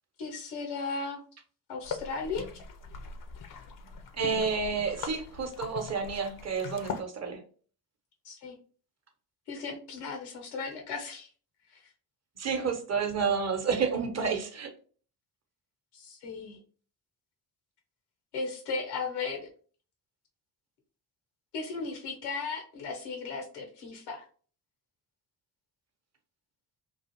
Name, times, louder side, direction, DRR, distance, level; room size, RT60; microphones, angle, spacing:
voice 1, 0.2-1.2 1.7-2.5 8.2-8.6 9.5-11.3 11.7-11.8 15.9-16.6 18.3-19.5 21.5-24.3, left 4 dB, 85° left, 0.9 m, -36 dB
sound 1, 1.8-7.0, left 5 dB, 45° left, 0.6 m, -41 dB
voice 2, 4.1-7.4 12.4-14.7, right 5 dB, 35° right, 0.8 m, -30 dB
2.5 x 2.4 x 2.8 m
hypercardioid pair, 45°, 48 cm